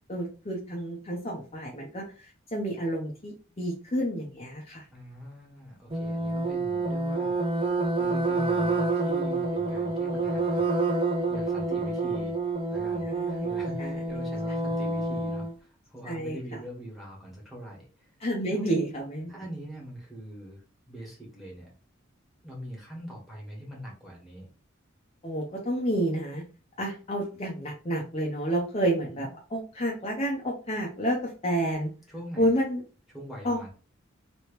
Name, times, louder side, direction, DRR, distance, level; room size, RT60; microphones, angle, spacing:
voice 1, 0.1-4.8 13.0-13.5 13.8-14.0 16.1-16.4 18.2-19.3 25.2-26.4 26.8-31.9 32.4-32.8 33.4-33.6, right 1 dB, 30° left, -2 dB, 0.7 m, -30 dB
voice 2, 4.9-7.4 8.0-12.4 12.7-18.1 18.5-18.6 19.3-21.7 22.4-24.5 29.1-29.3 32.1-32.5 33.1-33.7, equal, ahead, -3 dB, 1.5 m, -43 dB
sound 1, 5.9-15.5, right 3 dB, 25° right, 0.5 m, -28 dB
3.0 x 3.0 x 3.1 m, 0.35 s
head